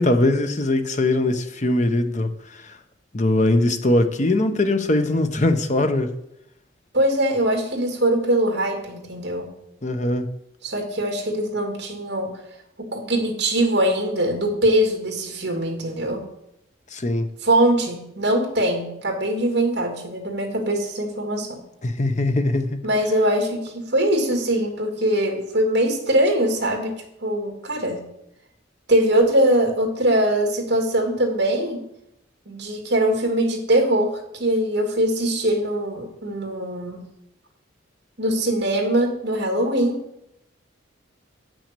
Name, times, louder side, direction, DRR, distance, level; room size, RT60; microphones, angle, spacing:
voice 1, 0.0-2.7 3.1-6.1 9.8-10.3 16.9-17.3 21.8-22.8, left 1 dB, 40° left, 0.8 m, -21 dB
voice 2, 6.9-9.5 10.6-12.4 12.8-16.2 17.4-21.6 22.8-26.9 27.2-28.0 28.9-31.8 32.5-37.0 38.2-40.0, right 1 dB, 55° right, 2.3 m, -22 dB
8.5 x 6.2 x 6.8 m
head